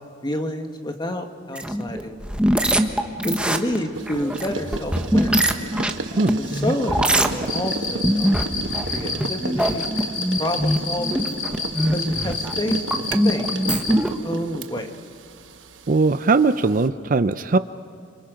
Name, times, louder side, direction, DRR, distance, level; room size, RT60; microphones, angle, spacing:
voice 1, 0.2-2.2 3.2-5.4 6.4-11.3 11.9-14.9, left 1 dB, 25° left, 5 dB, 1.6 m, -29 dB
sound 1, 1.5-14.1, equal, 5° right, 1.1 m, -22 dB
sound 2, 3.9-16.9, right 3 dB, 75° right, 1.0 m, -34 dB
Cricket, 7.4-14.0, left 5 dB, 45° left, 4.2 m, -29 dB
voice 2, 15.9-17.6, right 3 dB, 45° right, 12 dB, 0.6 m, -19 dB
30.0 x 26.0 x 5.2 m, 2.2 s
head